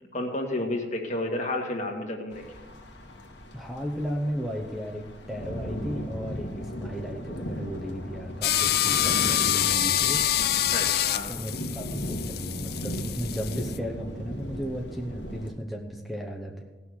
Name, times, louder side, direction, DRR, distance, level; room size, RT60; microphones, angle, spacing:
voice 1, 0.1-2.4 10.7-11.4, left 1 dB, 40° left, 2 dB, 1.8 m, -31 dB
sound 1, 2.3-15.5, equal, 85° left, 1.6 m, -37 dB
voice 2, 3.5-10.2 11.3-16.6, equal, ahead, 1 dB, 0.9 m, -35 dB
sound 2, 8.4-13.8, left 11 dB, 60° left, 0.5 m, -26 dB
17.5 x 6.0 x 6.3 m, 1.2 s
head